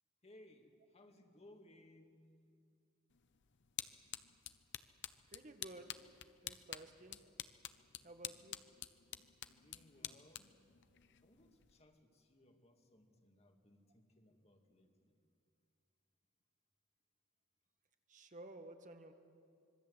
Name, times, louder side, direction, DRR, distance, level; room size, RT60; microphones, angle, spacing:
voice 1, 0.2-2.3 9.4-10.6 11.2-15.2, left 1 dB, 30° left, 4 dB, 2.3 m, -64 dB
sound 1, 3.1-11.8, left 12 dB, 60° left, 0.8 m, -50 dB
voice 2, 5.3-6.0 6.4-7.2 8.0-8.6 18.1-19.1, right 2 dB, 40° right, 6 dB, 1.7 m, -54 dB
25.5 x 22.5 x 8.2 m, 2.4 s
head